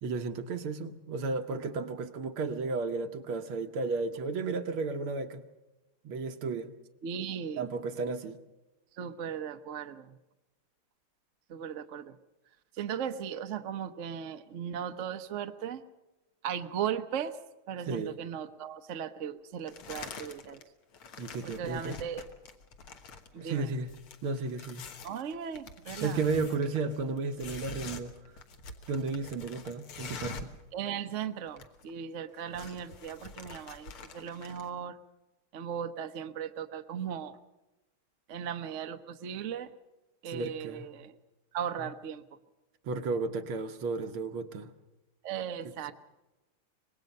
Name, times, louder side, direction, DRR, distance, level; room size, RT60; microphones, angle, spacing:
voice 1, 0.0-5.4 6.0-6.7 7.6-8.4 17.9-18.2 21.2-22.0 23.4-23.9 24.2-24.9 26.0-28.1 28.9-30.5 40.3-40.8 42.9-44.7, right 4 dB, 75° right, 2.0 m, -33 dB
voice 2, 7.0-7.7 9.0-10.2 11.5-12.2 12.7-15.8 16.4-17.4 17.7-20.6 21.4-22.2 23.3-23.7 25.0-26.2 30.7-35.0 35.5-37.4 38.3-39.7 40.2-41.2 41.5-42.2 45.2-45.9, right 8 dB, 50° right, 0.9 m, -37 dB
sound 1, 19.7-20.6 20.9-30.6 30.9-31.0 31.2-31.9 32.2-34.7, left 4 dB, 80° left, 2.3 m, -46 dB
25.0 x 20.0 x 5.4 m
omnidirectional pair, 2.4 m